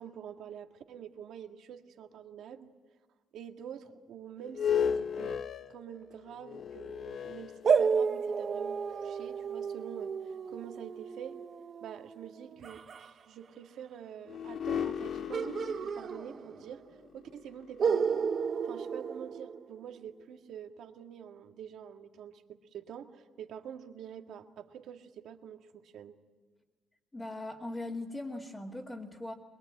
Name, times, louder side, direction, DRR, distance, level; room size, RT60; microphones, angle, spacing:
voice 1, 0.0-2.7 3.3-5.4 5.7-11.4 11.8-16.8 17.1-18.2 18.6-26.1, right 8 dB, 75° right, 5 dB, 1.8 m, -46 dB
sound 1, 4.4-8.2 8.9-9.0 14.3-18.5, left 7 dB, 55° left, 0.8 m, -36 dB
sound 2, 7.6-13.1 15.3-16.8 17.0-17.1 17.8-20.0, right 6 dB, 50° right, 1.0 m, -32 dB
voice 2, 27.1-29.3, left 2 dB, 20° left, -4 dB, 2.4 m, -39 dB
23.0 x 22.0 x 8.8 m, 1.4 s
cardioid pair, 90°, 0 cm